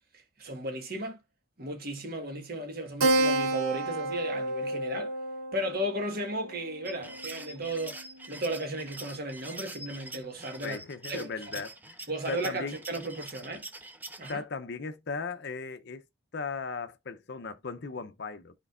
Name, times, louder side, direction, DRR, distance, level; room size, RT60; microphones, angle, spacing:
voice 1, 0.1-1.2 1.6-5.1 5.5-10.8 11.1-11.6 12.1-13.7 14.2-14.4, right 1 dB, 45° right, 1.4 m, -35 dB
Keyboard (musical), 3.0-8.0, right 2 dB, 85° right, 1.0 m, -31 dB
sound 1, 6.9-14.3, right 2 dB, 10° right, 0.5 m, -44 dB
voice 2, 10.6-11.9 12.3-12.8 14.3-16.0 16.3-18.5, left 4 dB, 50° left, 0.6 m, -37 dB
12.0 x 4.4 x 2.4 m
head